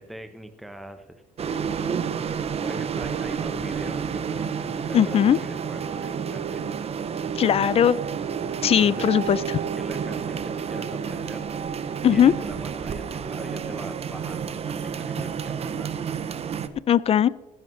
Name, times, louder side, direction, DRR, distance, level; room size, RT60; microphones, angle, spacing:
voice 1, 0.0-2.1 2.6-6.7 8.6-9.2 9.7-11.5 12.1-16.0, right 1 dB, ahead, 7 dB, 0.8 m, -41 dB
sound 1, 1.4-16.7, right 7 dB, 35° right, 0.7 m, -30 dB
voice 2, 4.9-5.4 7.4-8.0 8.6-9.4 12.0-12.3 16.9-17.3, left 9 dB, 35° left, 20 dB, 0.4 m, -18 dB
15.0 x 11.0 x 3.2 m, 1.1 s
cardioid pair, 110°, 17 cm